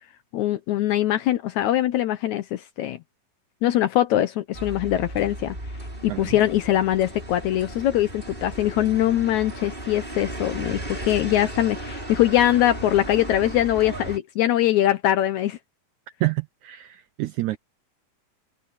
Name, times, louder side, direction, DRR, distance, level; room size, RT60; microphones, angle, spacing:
voice 1, 0.3-3.0 3.6-5.6 6.0-15.6, left 13 dB, 75° left, 1.8 m, -22 dB
sound 1, 4.5-14.2, right 1 dB, 15° right, 7.4 m, -35 dB
voice 2, 16.2-17.6, right 18 dB, 80° right, 1.7 m, -28 dB
omnidirectional pair, 4.0 m